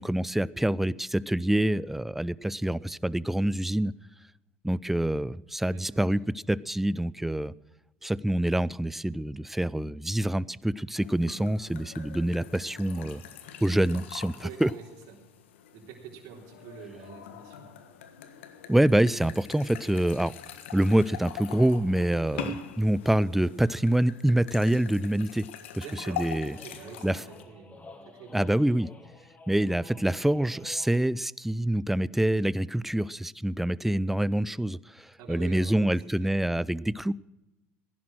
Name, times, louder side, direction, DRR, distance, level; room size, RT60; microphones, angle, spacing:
voice 1, 0.0-3.9 4.6-6.2 6.5-7.5 8.0-13.2 13.6-14.7 18.7-20.3 20.7-25.5 25.7-26.6 27.0-27.2 28.3-28.9 29.5-37.1, right 1 dB, 5° right, 21 dB, 0.5 m, -26 dB
voice 2, 5.7-6.3 13.0-13.1 14.4-15.2 15.7-17.8 22.3-22.5 25.8-27.7 28.1-28.7 35.2-36.3, right 7 dB, 60° right, -1 dB, 3.7 m, -46 dB
sound 1, 10.9-27.4, left 7 dB, 90° left, 1.5 m, -43 dB
sound 2, 26.5-31.2, left 2 dB, 20° left, 2.2 m, -50 dB
15.5 x 11.0 x 6.1 m, 0.96 s
supercardioid pair, 95°, 6 cm